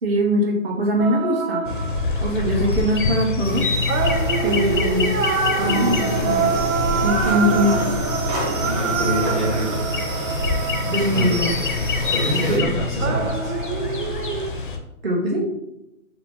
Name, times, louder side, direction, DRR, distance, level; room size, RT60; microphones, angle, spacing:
voice 1, 0.0-1.6 2.2-3.7 4.4-5.1 5.6-6.4 7.0-7.8 10.9-11.5 12.5-12.6 15.0-15.5, equal, 45° right, -2 dB, 1.2 m, -21 dB
sound 1, 1.0-2.6 3.9-11.7 13.0-14.5, right 6 dB, 80° right, 0.6 m, -26 dB
sound 2, 1.7-14.8, left 3 dB, 40° left, 0.4 m, -26 dB
sound 3, 3.4-12.6, right 1 dB, 30° right, 1.5 m, -31 dB
voice 2, 8.6-9.8 11.1-11.5 12.1-13.5, equal, ahead, -9 dB, 0.7 m, -25 dB
4.6 x 2.0 x 3.6 m, 0.83 s
hypercardioid pair, 160°, 40 cm